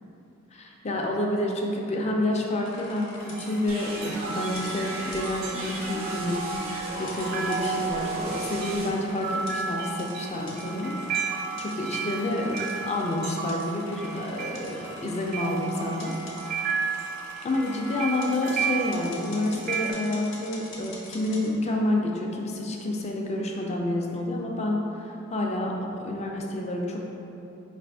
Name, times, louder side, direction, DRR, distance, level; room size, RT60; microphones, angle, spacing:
voice 1, 0.5-12.6 12.9-16.1 16.5-17.0 17.4-27.0, left 1 dB, 30° left, 0 dB, 0.4 m, -29 dB
sound 1, 2.6-21.5, left 2 dB, 60° left, 0.8 m, -45 dB
sound 2, 3.2-19.9, right 5 dB, 45° right, 0.4 m, -33 dB
sound 3, 3.7-8.9, right 1 dB, 85° right, 0.8 m, -36 dB
4.8 x 2.5 x 3.4 m, 2.9 s
head